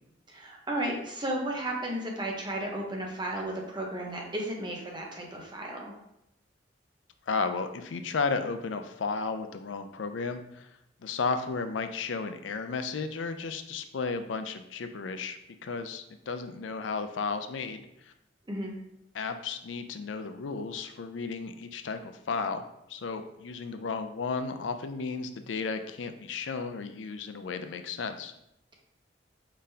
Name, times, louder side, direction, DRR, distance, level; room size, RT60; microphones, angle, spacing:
voice 1, 0.3-6.0 18.5-18.7, right 1 dB, 25° right, -1 dB, 0.9 m, -34 dB
voice 2, 7.3-10.7 11.0-18.1 19.1-22.6 22.9-28.3, left 4 dB, 85° left, 8 dB, 0.5 m, -34 dB
4.9 x 3.8 x 2.7 m, 0.81 s
head